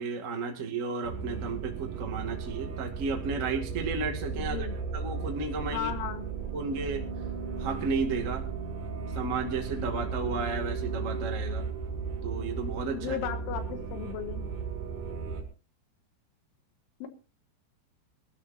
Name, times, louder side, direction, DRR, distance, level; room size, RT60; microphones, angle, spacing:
voice 1, 0.0-4.7 4.9-5.9 6.5-7.0 7.5-8.4 9.1-11.7 12.2-13.2, right 4 dB, 90° right, 2 dB, 0.6 m, -33 dB
sound 1, 1.0-15.4, right 5 dB, 50° right, 2.8 m, -35 dB
voice 2, 4.4-4.8 5.7-6.3 12.9-14.5 17.0-17.1, left 9 dB, 80° left, 8 dB, 3.7 m, -35 dB
24.5 x 12.5 x 2.7 m, 0.33 s
omnidirectional pair, 5.5 m